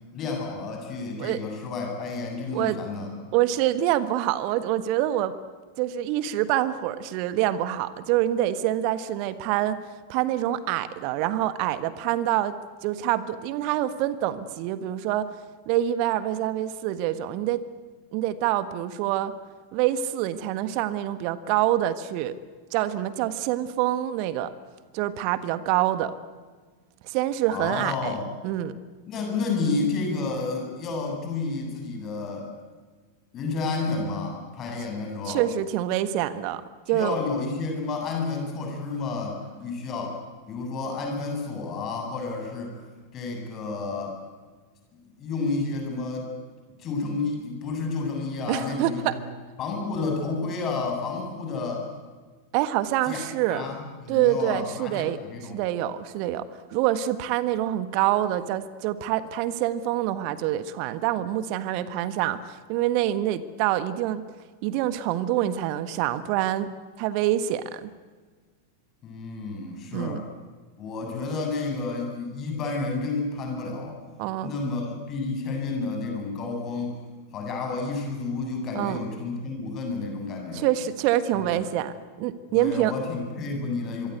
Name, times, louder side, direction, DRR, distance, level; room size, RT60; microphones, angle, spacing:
voice 1, 0.1-3.1 27.5-28.3 29.1-32.5 33.3-35.4 36.9-40.2 40.5-42.7 43.1-44.2 45.0-46.3 46.8-49.2 49.6-51.9 53.1-53.2 53.5-55.6 69.0-70.2 70.8-74.0 74.4-77.0 77.3-80.7 81.3-81.7 82.5-84.1, left 3 dB, 30° left, 2 dB, 7.5 m, -30 dB
voice 2, 3.3-5.3 5.8-9.8 10.1-12.5 12.8-15.3 15.7-17.6 18.1-19.3 19.7-22.3 22.7-24.5 24.9-26.1 27.0-28.1 28.4-28.8 35.2-36.6 36.9-37.2 48.5-49.1 52.5-53.6 54.1-55.2 55.5-56.4 56.7-64.3 64.6-66.7 67.0-67.9 69.9-70.2 74.2-74.5 78.7-79.0 80.5-81.9 82.2-82.9, right 13 dB, 45° right, 14 dB, 1.4 m, -26 dB
26.0 x 23.5 x 8.2 m, 1.4 s
figure-of-eight pair, 90°, 0 cm